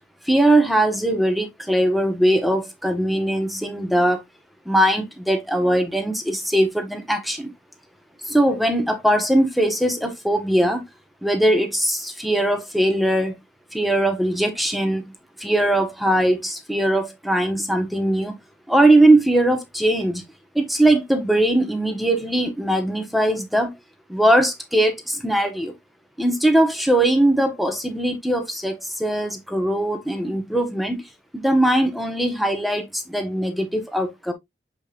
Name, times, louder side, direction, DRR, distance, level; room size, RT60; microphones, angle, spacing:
voice 1, 0.2-4.2 4.6-7.5 8.2-10.8 11.2-13.3 13.7-15.1 15.4-18.3 18.7-20.2 20.5-23.7 24.1-25.7 26.2-31.0 31.3-34.3, right 1 dB, ahead, 1.2 m, -20 dB
7.5 x 5.1 x 2.5 m
head